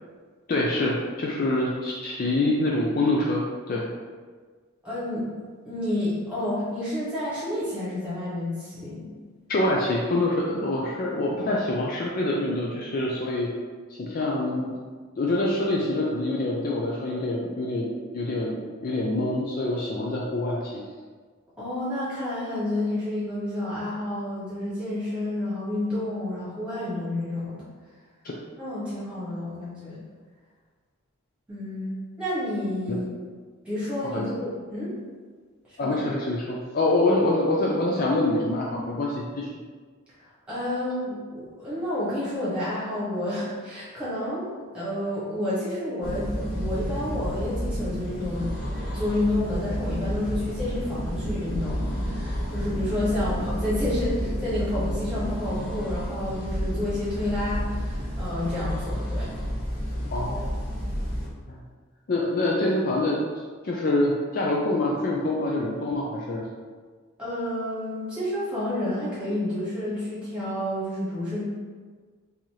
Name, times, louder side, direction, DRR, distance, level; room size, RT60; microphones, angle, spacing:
voice 1, 0.5-3.9 9.5-13.5 13.9-14.8 15.2-20.8 34.1-34.3 35.8-39.5 60.1-60.5 61.5-61.6 62.1-63.2 63.6-66.4, left 2 dB, 40° left, -3 dB, 0.4 m, -25 dB
voice 2, 4.8-5.2 5.6-9.1 21.6-27.6 28.6-30.0 31.5-33.1 33.6-34.9 35.7-36.0 40.2-48.6 48.9-59.3 67.2-71.4, left 1 dB, 5° right, -11 dB, 1.4 m, -30 dB
sound 1, 46.0-61.3, equal, 60° left, 1.4 m, -30 dB
3.8 x 2.7 x 3.0 m, 1.5 s
head